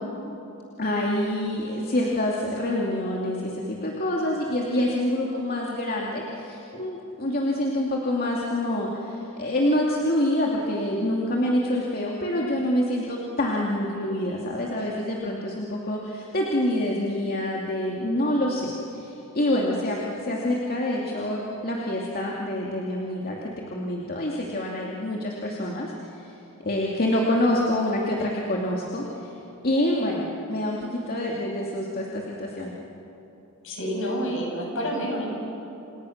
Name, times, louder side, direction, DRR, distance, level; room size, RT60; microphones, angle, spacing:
voice 1, 0.8-26.3 26.6-29.3 29.6-32.7, left 1 dB, 45° left, -2 dB, 2.5 m, -26 dB
voice 2, 33.6-35.3, equal, 60° left, -1 dB, 7.3 m, -28 dB
28.5 x 28.0 x 6.6 m, 3.0 s
head